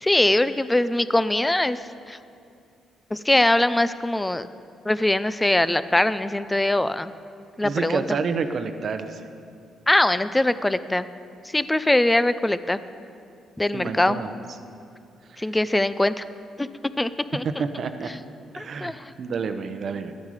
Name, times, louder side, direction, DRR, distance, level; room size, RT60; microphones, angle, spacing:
voice 1, 0.0-1.8 2.1-2.2 3.1-4.5 4.9-7.1 7.6-8.2 9.9-11.1 11.4-12.8 13.6-14.2 15.4-16.2 16.6-16.7 17.0-17.6 18.6-19.1, left 1 dB, 10° left, 14 dB, 0.4 m, -22 dB
voice 2, 7.6-9.3 13.7-14.3 15.3-15.4 17.6-18.1 18.5-18.9 19.2-20.1, right 5 dB, 55° right, 8 dB, 0.7 m, -29 dB
12.5 x 9.4 x 4.9 m, 2.5 s
cardioid pair, 90°, 0 cm